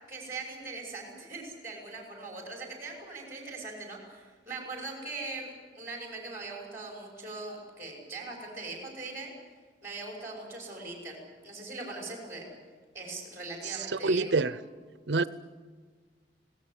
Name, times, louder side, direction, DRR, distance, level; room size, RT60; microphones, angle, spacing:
voice 1, 0.1-9.3 9.8-12.5 12.9-14.5, right 3 dB, 15° right, -1 dB, 5.9 m, -41 dB
voice 2, 14.0-14.5 15.1-15.2, right 3 dB, 70° right, 15 dB, 0.7 m, -25 dB
25.5 x 18.0 x 8.2 m, 1.5 s
head